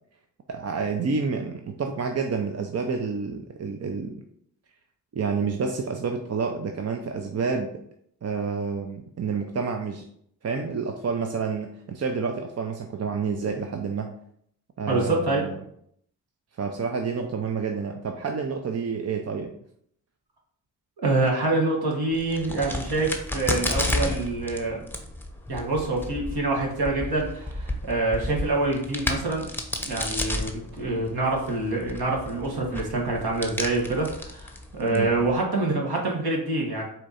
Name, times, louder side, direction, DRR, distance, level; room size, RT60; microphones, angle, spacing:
voice 1, 0.5-4.2 5.1-7.8 8.2-10.0 10.4-14.1 14.8-15.6 16.6-19.5 34.9-35.1, right 5 dB, 35° right, 4 dB, 0.5 m, -29 dB
voice 2, 14.9-15.4 21.0-24.8 25.5-29.4 29.8-36.8, right 2 dB, 60° right, -1 dB, 1.5 m, -26 dB
Crack, 22.1-35.4, left 1 dB, 5° left, 0.8 m, -32 dB
4.4 x 2.7 x 4.1 m, 0.68 s
supercardioid pair, 45°, 43 cm